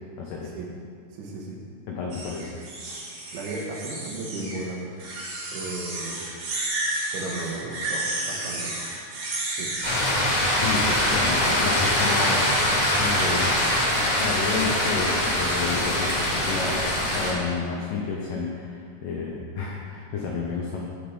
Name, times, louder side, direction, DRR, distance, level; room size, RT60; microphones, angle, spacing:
voice 1, 0.2-0.5 1.9-2.5 10.5-12.5 13.0-13.6 14.2-20.8, left 4 dB, 85° left, -2 dB, 1.8 m, -30 dB
voice 2, 1.1-1.6 3.3-4.9 5.5-6.2 7.1-8.7 9.4-9.7, right 2 dB, 85° right, -1 dB, 3.8 m, -35 dB
sound 1, 2.1-4.6 5.0-10.1, right 2 dB, 55° right, 3.8 m, -32 dB
sound 2, 9.8-17.3, left 1 dB, 30° left, 0.7 m, -23 dB
16.0 x 7.1 x 3.8 m, 2.2 s
omnidirectional pair, 5.3 m